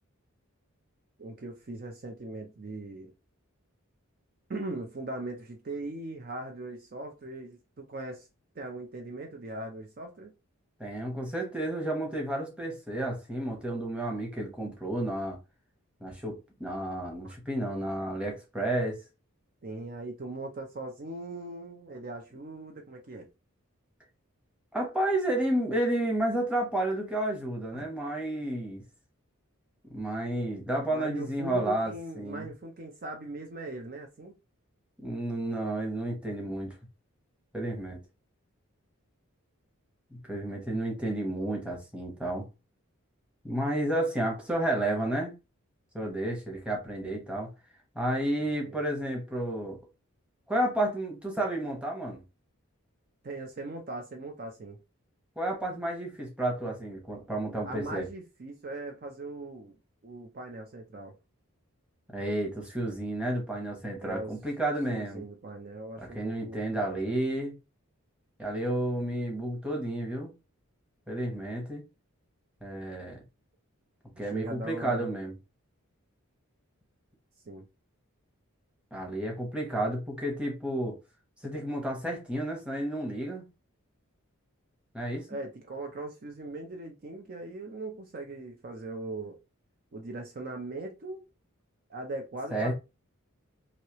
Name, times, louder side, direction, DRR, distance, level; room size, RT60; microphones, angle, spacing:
voice 1, 1.2-3.1 4.5-8.3 8.6-10.3 17.2-17.3 19.6-23.3 27.7-27.9 30.9-34.3 48.4-48.8 53.2-54.8 57.6-59.8 60.0-61.2 64.0-64.4 64.9-66.7 74.3-75.1 77.5-77.7 85.3-89.4 89.9-91.2 91.9-92.7, right 2 dB, 40° right, 0.5 m, -40 dB
voice 2, 10.8-15.4 16.0-19.0 24.7-28.8 29.9-32.5 35.0-36.8 37.5-38.0 40.1-42.4 43.4-45.3 45.9-47.5 47.9-49.8 50.5-52.2 55.4-58.1 62.1-65.2 66.0-67.5 68.4-70.3 71.1-71.8 72.6-73.2 74.2-75.3 78.9-81.0 81.4-83.4 84.9-85.3 92.5-92.7, right 1 dB, 5° right, 0.9 m, -31 dB
3.1 x 2.7 x 2.9 m
head